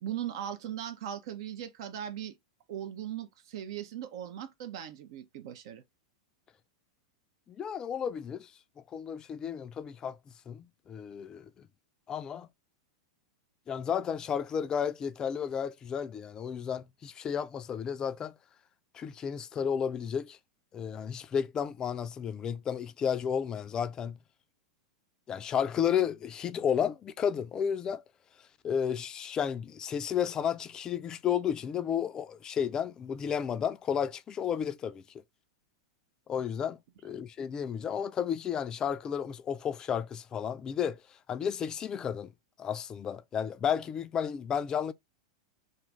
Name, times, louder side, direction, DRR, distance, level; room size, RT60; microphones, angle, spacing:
voice 1, 0.0-2.4 2.7-5.8, right 10 dB, 60° right, 0.4 m, -39 dB
voice 2, 7.5-8.5 8.9-10.2 10.5-11.5 12.1-12.5 13.7-18.3 18.9-20.4 20.7-24.2 25.3-28.0 28.6-35.0 36.3-41.0 41.3-42.3 42.6-44.9, left 8 dB, 25° left, 0.3 m, -32 dB
2.6 x 2.4 x 3.1 m
hypercardioid pair, 100°, 3 cm